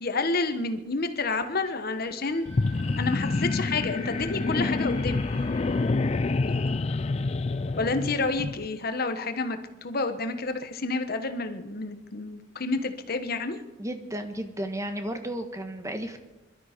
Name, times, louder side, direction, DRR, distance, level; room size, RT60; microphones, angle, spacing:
voice 1, 0.0-2.5 3.0-5.3 6.4-6.8 7.8-13.6, left 3 dB, 55° left, 8 dB, 1.2 m, -29 dB
sound 1, 2.1-9.0, equal, 65° right, 4.8 m, -47 dB
sound 2, 2.5-8.7, left 3 dB, 35° left, 0.4 m, -27 dB
voice 2, 13.8-16.2, right 1 dB, 15° right, 7 dB, 1.4 m, -33 dB
21.5 x 12.5 x 5.2 m, 1.1 s
head